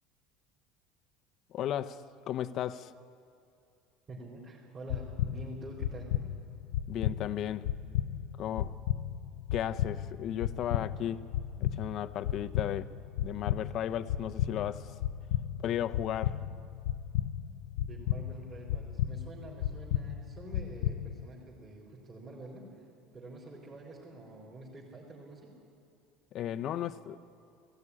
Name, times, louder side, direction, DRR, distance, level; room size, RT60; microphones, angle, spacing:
voice 1, 1.5-2.9 6.9-7.7 8.4-8.8 9.5-11.3 11.6-12.9 13.2-15.0 15.6-16.5 26.3-27.2, left 11 dB, 45° left, 0.7 m, -35 dB
voice 2, 4.1-6.1 17.8-22.9 23.1-25.6, right 2 dB, 25° right, 3.9 m, -47 dB
sound 1, 4.9-21.3, left 11 dB, 80° left, 0.6 m, -34 dB
18.5 x 16.0 x 9.8 m
cardioid pair, 145°, 0 cm